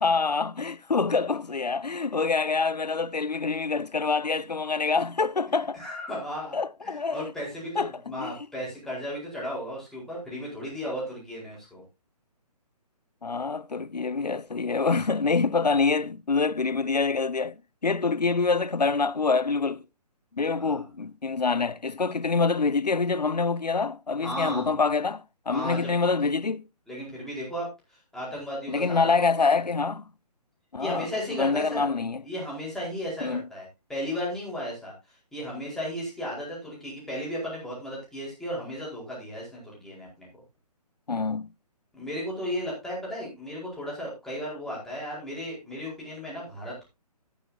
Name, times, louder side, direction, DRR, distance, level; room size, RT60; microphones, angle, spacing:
voice 1, 0.0-5.8 6.5-7.3 7.8-7.9 8.2-8.3 13.2-19.8 20.3-26.6 28.7-30.0 30.7-32.2 33.2-33.4 41.1-41.5, left 4 dB, 85° left, 0.6 m, -26 dB
voice 2, 5.7-6.6 6.8-11.8 20.6-20.8 24.2-24.7 25.5-25.9 26.2-26.3 26.9-29.1 30.8-31.9 32.2-40.3 41.9-46.9, equal, ahead, 4.6 m, -35 dB
12.5 x 9.9 x 2.8 m
figure-of-eight pair, 140°, 20 cm